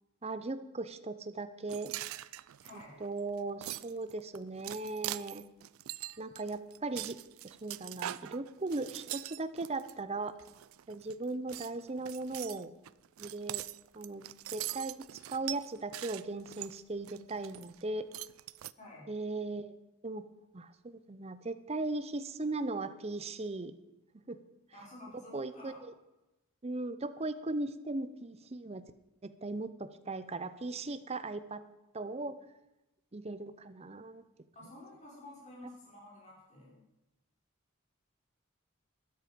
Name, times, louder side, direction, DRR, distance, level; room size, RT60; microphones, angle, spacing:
voice 1, 0.2-1.9 3.0-5.5 6.2-7.2 7.4-10.3 10.9-12.7 13.2-13.6 13.9-18.1 19.1-19.8 20.0-20.2 20.5-23.7 24.3-24.4 25.3-25.9 26.6-28.8 29.2-31.6 31.9-32.4 33.1-34.2, right 2 dB, 30° right, 12 dB, 0.6 m, -38 dB
sound 1, 1.7-9.9 10.4-11.1 11.5-17.8 18.1-18.7, right 15 dB, 75° right, 0.4 m, -42 dB
voice 2, 2.6-3.0 18.8-19.0 24.7-25.8 34.5-36.8, left 1 dB, 35° left, -5 dB, 5.4 m, -51 dB
13.0 x 10.5 x 5.2 m, 0.97 s
head